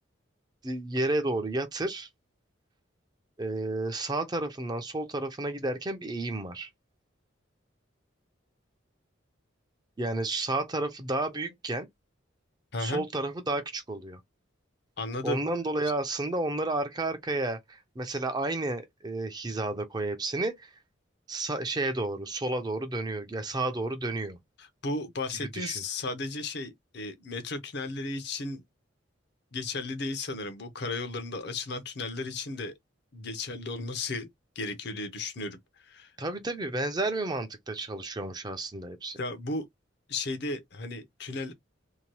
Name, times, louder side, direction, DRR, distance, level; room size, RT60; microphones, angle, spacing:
voice 1, 0.6-2.1 3.4-6.7 10.0-11.9 12.8-14.2 15.2-20.7 21.3-24.4 25.4-25.8 36.2-39.2, right 2 dB, 20° right, 0.5 m, -31 dB
voice 2, 12.7-13.0 15.0-15.4 24.6-28.6 29.5-32.7 33.1-34.3 34.6-36.1 39.2-39.7 40.1-41.5, left 2 dB, 60° left, 0.7 m, -34 dB
2.8 x 2.2 x 3.0 m
head